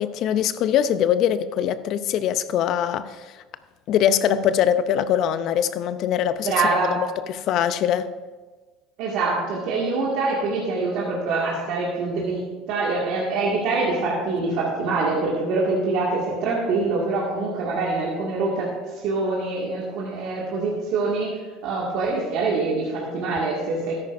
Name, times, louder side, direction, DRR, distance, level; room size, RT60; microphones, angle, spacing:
voice 1, 0.0-3.2 3.9-7.0 7.3-8.1, left 9 dB, 55° left, 0.5 m, -22 dB
voice 2, 6.4-7.0 9.0-23.9, right 3 dB, 65° right, 2.0 m, -25 dB
13.0 x 10.5 x 2.6 m
hypercardioid pair, 85°, 0 cm